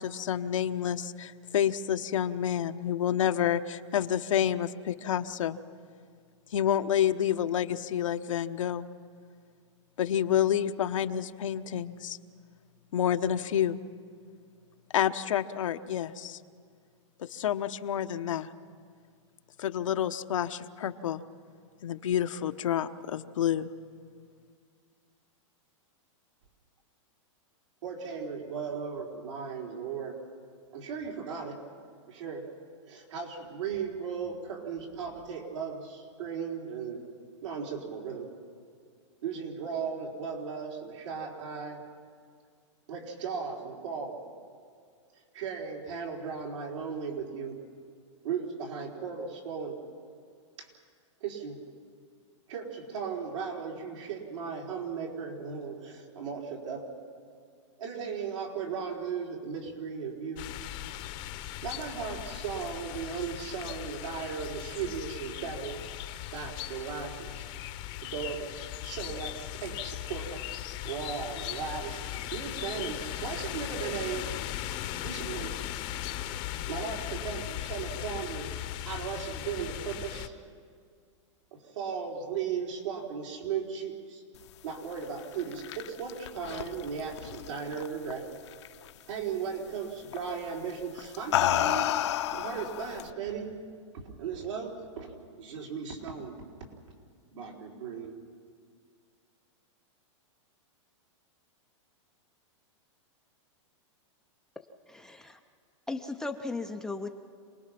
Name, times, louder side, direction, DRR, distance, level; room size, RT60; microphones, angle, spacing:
voice 1, 0.0-5.6 6.5-8.9 10.0-12.2 12.9-13.8 14.9-16.4 17.2-18.5 19.6-21.2 21.8-23.7, left 10 dB, 85° left, 8 dB, 1.0 m, -29 dB
voice 2, 27.8-30.2 30.7-31.6 32.1-32.5 32.8-37.0 37.4-38.3 39.2-41.8 42.9-44.2 45.3-47.6 48.2-49.8 50.6-50.7 51.2-51.6 52.5-56.9 57.8-60.5 61.6-66.0 66.3-67.5 68.0-68.5 68.8-70.5 70.8-74.4 74.9-75.6 76.7-78.5 78.8-80.3 81.5-84.2 84.6-88.3 89.1-91.9 92.3-93.5 93.9-95.1 95.4-96.4 97.3-98.2, right 6 dB, 70° right, -1 dB, 4.6 m, -36 dB
sound 1, 60.4-80.3, left 13 dB, 30° left, 0.8 m, -38 dB
sound 2, 85.2-88.1 88.5-88.9 90.1-90.4 91.0-93.1, left 12 dB, 60° left, 0.8 m, -30 dB
voice 3, 104.9-105.4 105.9-107.1, left 3 dB, 5° left, 4 dB, 0.5 m, -36 dB
27.5 x 20.0 x 6.0 m, 2.1 s
supercardioid pair, 165°, 16 cm